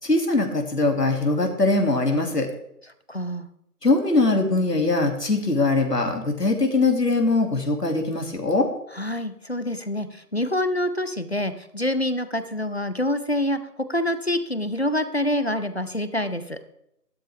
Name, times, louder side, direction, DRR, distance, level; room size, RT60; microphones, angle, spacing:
voice 1, 0.0-2.5 3.8-8.7, left 2 dB, 80° left, 3 dB, 2.8 m, -21 dB
voice 2, 3.1-3.5 8.9-13.6 13.9-16.6, left 1 dB, 40° left, 11 dB, 0.8 m, -26 dB
12.5 x 11.0 x 3.5 m, 0.78 s
figure-of-eight pair, 170°, 47 cm